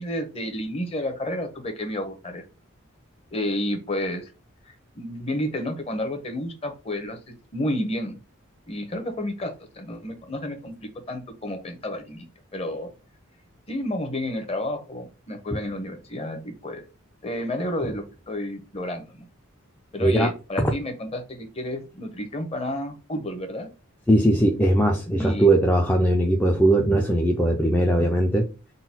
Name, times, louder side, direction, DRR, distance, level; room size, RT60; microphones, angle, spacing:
voice 1, 0.0-2.4 3.3-4.3 4.6-8.2 8.7-12.2 12.5-12.9 13.7-16.8 17.2-19.3 19.9-23.7 25.2-25.5, left 1 dB, 30° left, 0.9 m, -31 dB
voice 2, 20.0-20.3 20.6-20.7 24.1-28.5, right 1 dB, 10° left, 0.4 m, -20 dB
3.9 x 2.3 x 4.2 m
head